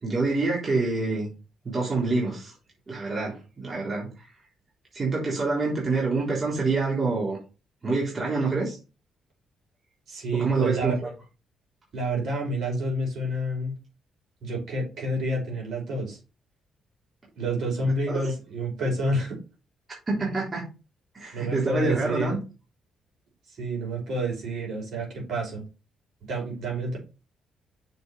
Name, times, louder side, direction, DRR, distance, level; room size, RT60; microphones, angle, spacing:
voice 1, 0.0-1.3 1.6-2.5 2.9-4.1 4.9-7.4 7.8-8.8 10.3-11.1 18.1-18.2 20.1-20.7 21.1-22.4, right 3 dB, 35° right, -4 dB, 3.7 m, -26 dB
voice 2, 10.1-11.0 11.9-13.7 14.4-16.2 17.4-19.4 21.3-22.4 23.5-25.6 26.3-27.0, right 1 dB, 60° right, -1 dB, 5.3 m, -29 dB
6.6 x 5.3 x 5.5 m, 0.32 s
cardioid pair, 90°, 0 cm